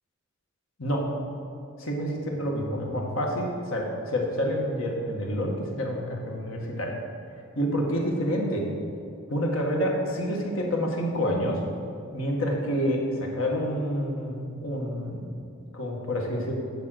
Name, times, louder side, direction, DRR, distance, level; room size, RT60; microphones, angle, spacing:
voice 1, 1.8-6.9 7.5-8.6 9.3-11.6 12.1-15.3 15.7-16.5, equal, 80° left, -1 dB, 1.5 m, -28 dB
8.6 x 5.4 x 6.3 m, 2.4 s
head